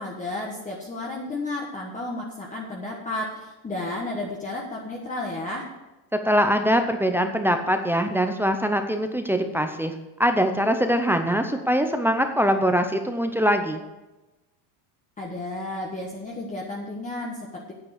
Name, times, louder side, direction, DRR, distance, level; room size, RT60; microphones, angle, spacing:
voice 1, 0.0-5.7 15.2-17.7, left 2 dB, 15° left, -2 dB, 1.3 m, -32 dB
voice 2, 6.2-9.9 10.2-13.8, equal, 5° right, 6 dB, 0.6 m, -22 dB
8.9 x 8.8 x 6.6 m, 1.1 s
cardioid pair, 140°, 48 cm